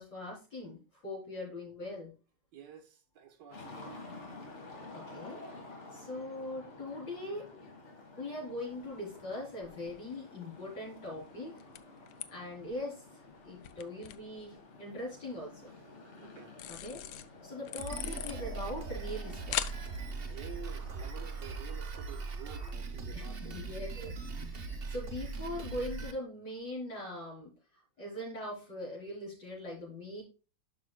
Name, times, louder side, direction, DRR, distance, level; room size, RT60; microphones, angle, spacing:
voice 1, 0.0-2.1 4.9-5.4 5.9-7.5 8.2-11.5 12.3-13.0 13.4-15.7 16.7-17.0 17.4-19.6 23.1-24.1 24.4-27.5 28.0-30.2, left 1 dB, 70° left, 4.7 m, -41 dB
voice 2, 2.5-4.1 16.2-16.6 20.2-23.6, right 8 dB, 70° right, 1.7 m, -50 dB
sound 1, 3.5-21.6, left 2 dB, 40° left, 1.8 m, -51 dB
sound 2, 8.7-22.8, left 12 dB, 85° left, 1.3 m, -46 dB
Drum kit, 17.8-26.1, right 4 dB, 45° right, 0.8 m, -40 dB
11.0 x 6.0 x 2.2 m
omnidirectional pair, 2.0 m